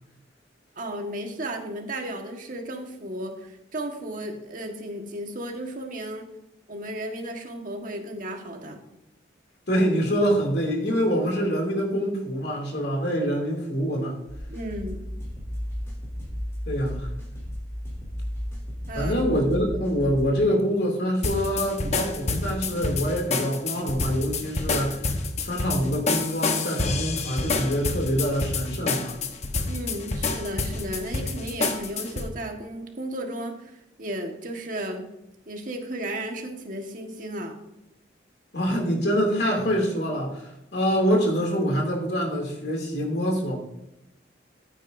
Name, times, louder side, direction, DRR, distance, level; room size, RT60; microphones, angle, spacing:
voice 1, 0.7-6.3 6.7-8.8 14.5-15.0 18.9-19.2 29.7-35.1 35.5-37.6, right 1 dB, 45° right, 3 dB, 1.6 m, -34 dB
voice 2, 9.7-14.2 16.7-17.1 18.9-25.0 25.4-29.2 38.5-43.6, equal, 60° left, 1 dB, 2.7 m, -25 dB
sound 1, 14.3-20.3, equal, 15° left, 3.0 m, -34 dB
sound 2, 21.2-32.3, left 3 dB, 35° left, 0.9 m, -28 dB
14.0 x 9.1 x 2.7 m, 0.87 s
head